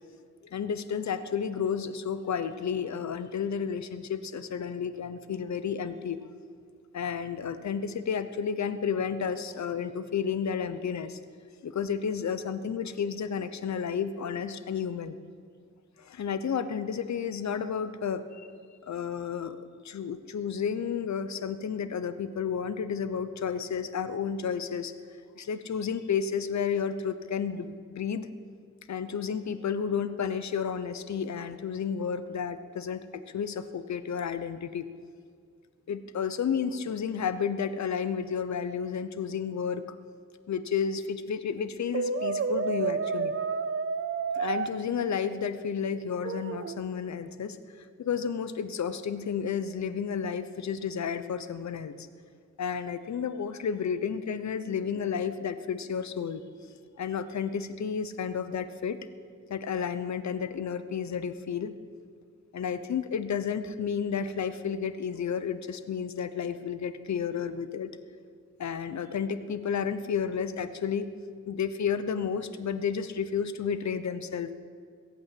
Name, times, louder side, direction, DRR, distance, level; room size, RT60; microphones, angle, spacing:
voice 1, 0.4-6.3 6.9-11.2 11.6-15.2 16.0-18.5 18.8-24.9 25.4-28.3 28.9-34.9 35.9-40.0 40.5-43.3 44.3-52.1 52.6-59.0 59.5-61.7 62.5-67.9 68.6-71.1 71.5-74.5, left 7 dB, 70° left, 12 dB, 0.9 m, -32 dB
Brass instrument, 41.9-44.7 46.2-46.8, right 5 dB, 45° right, 0.7 m, -30 dB
21.5 x 8.5 x 7.7 m, 2.1 s
wide cardioid pair, 105°, 29 cm